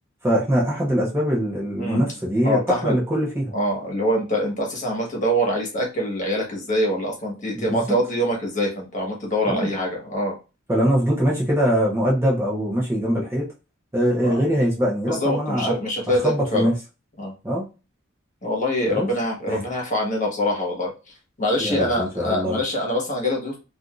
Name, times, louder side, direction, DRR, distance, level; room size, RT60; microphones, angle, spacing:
voice 1, 0.2-3.5 7.6-8.0 9.4-9.7 10.7-13.5 13.9-15.7 16.2-16.7 17.4-17.7 18.9-19.1 19.5-19.6 21.6-22.6, equal, 10° right, -4 dB, 0.8 m, -22 dB
voice 2, 2.4-2.9 3.5-10.4 14.2-14.4 15.1-16.7 17.2-17.3 18.4-23.6, equal, 40° left, -1 dB, 1.3 m, -24 dB
3.4 x 2.6 x 2.4 m, 0.30 s
head